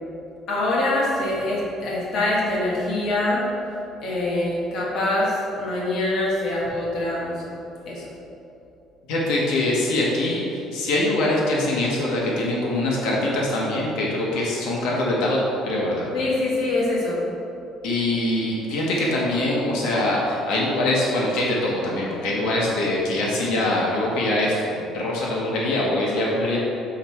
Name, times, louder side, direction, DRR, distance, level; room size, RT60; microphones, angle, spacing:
voice 1, 0.5-3.4 4.0-7.4 7.9-8.1 16.1-17.2, left 2 dB, 50° left, -5 dB, 1.3 m, -24 dB
voice 2, 9.1-15.4 15.6-16.1 17.8-26.6, left 1 dB, 80° left, -4 dB, 1.3 m, -23 dB
6.4 x 4.5 x 4.8 m, 2.8 s
cardioid pair, 175°, 0 cm